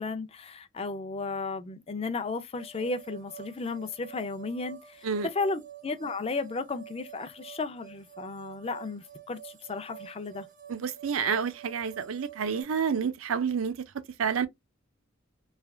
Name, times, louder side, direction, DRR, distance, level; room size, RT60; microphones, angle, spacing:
voice 1, 0.0-10.5, left 3 dB, 30° left, 0.4 m, -34 dB
sound 1, 2.5-12.6, right 11 dB, 40° right, 0.7 m, -48 dB
voice 2, 10.7-13.8 14.2-14.5, right 6 dB, 85° right, 0.4 m, -29 dB
3.2 x 2.4 x 2.2 m
head